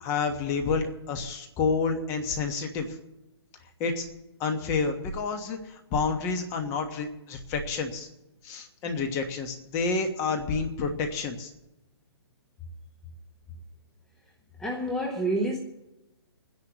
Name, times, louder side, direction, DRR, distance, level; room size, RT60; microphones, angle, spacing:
voice 1, 0.0-2.9 3.8-4.0 4.4-8.1 8.4-11.5, left 4 dB, 20° left, 5 dB, 1.3 m, -29 dB
voice 2, 14.6-15.6, right 1 dB, 5° left, 0 dB, 0.9 m, -28 dB
27.5 x 10.5 x 3.0 m, 0.98 s
hypercardioid pair, 155°, 14 cm